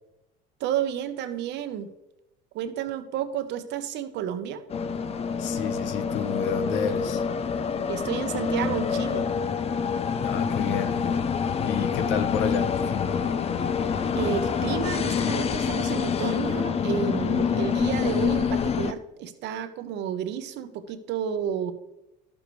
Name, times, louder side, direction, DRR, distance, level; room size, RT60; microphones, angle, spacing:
voice 1, 0.6-1.9 2.5-4.6 7.9-9.3 14.1-21.7, right 9 dB, 60° right, 0.9 m, -31 dB
sound 1, 4.7-18.9, left 6 dB, 30° left, 0.6 m, -26 dB
voice 2, 5.4-7.2 10.2-11.2 11.6-13.2, left 8 dB, 65° left, 0.9 m, -31 dB
11.5 x 7.0 x 3.1 m
supercardioid pair, 105°, 20 cm